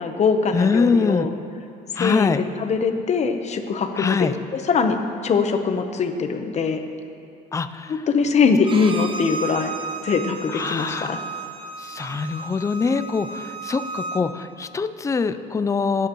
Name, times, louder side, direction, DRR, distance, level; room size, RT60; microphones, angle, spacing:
voice 1, 0.0-1.3 1.9-6.8 7.9-9.7 10.0-11.2, left 5 dB, 40° left, 6 dB, 1.0 m, -22 dB
voice 2, 0.5-1.3 2.0-2.4 4.0-4.3 7.5-7.9 10.5-11.1 11.8-16.1, left 4 dB, 20° left, 11 dB, 0.5 m, -23 dB
Bowed string instrument, 8.6-14.2, right 3 dB, 30° right, 0.9 m, -33 dB
18.5 x 9.3 x 3.1 m, 2.6 s
cardioid pair, 110°, 17 cm